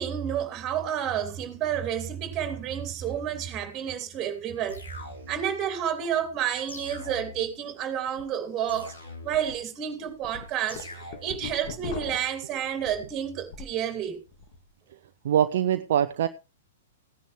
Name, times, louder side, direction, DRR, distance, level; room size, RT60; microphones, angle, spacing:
voice 1, 0.0-4.8 5.3-8.9 9.2-14.2, right 9 dB, 25° right, 3.0 m, -30 dB
sound 1, 4.7-5.6 6.7-7.6 8.7-9.6 10.7-11.6, left 2 dB, 75° left, 3.9 m, -43 dB
sound 2, 8.1-8.2 8.6-8.7 9.3-9.5 10.0-13.8 14.1-14.6, left 7 dB, 45° left, 1.8 m, -40 dB
voice 2, 15.2-16.3, right 10 dB, 55° right, 0.7 m, -23 dB
17.0 x 10.0 x 3.3 m
figure-of-eight pair, 110°, 0 cm